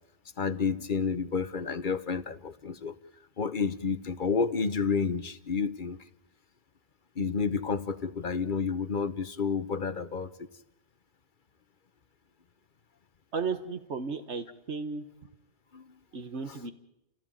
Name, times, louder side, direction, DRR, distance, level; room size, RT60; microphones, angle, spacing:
voice 1, 0.4-2.9 3.4-6.0 7.2-10.3 15.7-15.8 16.5-16.6, left 5 dB, 50° left, 12 dB, 1.2 m, -30 dB
voice 2, 13.3-15.0 16.1-16.7, right 5 dB, 85° right, 8 dB, 1.7 m, -34 dB
29.0 x 16.5 x 9.1 m, 0.88 s
omnidirectional pair, 1.1 m